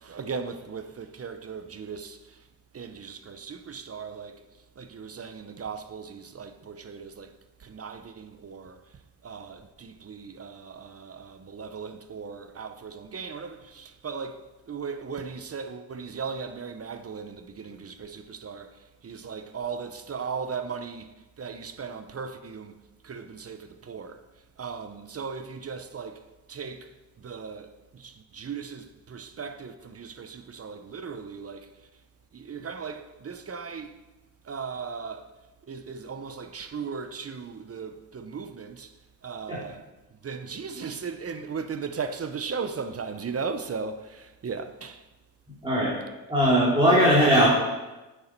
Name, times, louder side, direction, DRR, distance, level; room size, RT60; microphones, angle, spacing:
voice 1, 0.0-2.2 2.7-4.4 4.8-7.3 7.6-8.8 9.2-18.7 19.0-21.1 21.4-22.8 23.0-24.2 24.6-26.2 26.5-26.9 27.2-31.7 32.3-33.9 34.5-35.3 35.7-38.9 39.2-39.8 40.2-45.0, right 5 dB, 35° right, 0.7 m, -37 dB
voice 2, 45.6-46.0 46.3-47.5, equal, 10° right, 2.5 m, -19 dB
9.3 x 6.6 x 4.5 m
cardioid pair, 90°, 41 cm